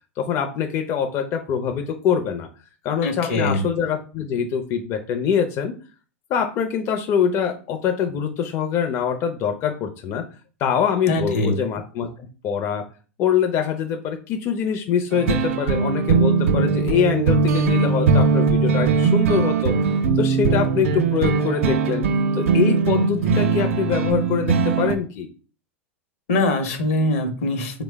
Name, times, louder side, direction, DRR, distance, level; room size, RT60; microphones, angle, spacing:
voice 1, 0.2-2.5 2.8-5.7 6.3-10.2 10.6-12.9 13.2-19.7 20.2-22.1 22.3-25.3, left 7 dB, 40° left, 5 dB, 0.4 m, -24 dB
voice 2, 3.0-3.6 11.1-11.6 26.3-27.8, left 2 dB, 75° left, 6 dB, 0.7 m, -22 dB
sound 1, 15.1-25.0, right 4 dB, 75° right, 0.4 m, -20 dB
3.2 x 2.0 x 3.2 m, 0.37 s
hypercardioid pair, 100°, 7 cm